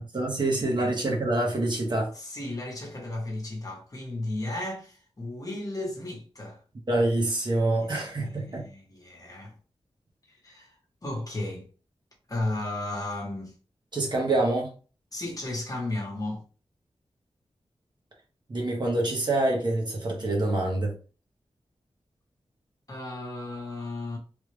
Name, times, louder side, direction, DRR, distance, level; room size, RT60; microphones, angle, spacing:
voice 1, 0.0-2.1 6.9-8.6 13.9-14.7 18.5-20.9, right 2 dB, 45° right, 1.1 m, -26 dB
voice 2, 2.1-6.6 7.7-9.5 10.3-10.7 11.0-11.7 12.3-13.5 15.1-16.4 22.9-24.2, left 2 dB, 35° left, 1.1 m, -34 dB
3.4 x 2.4 x 3.2 m
wide cardioid pair, 110°, 10 cm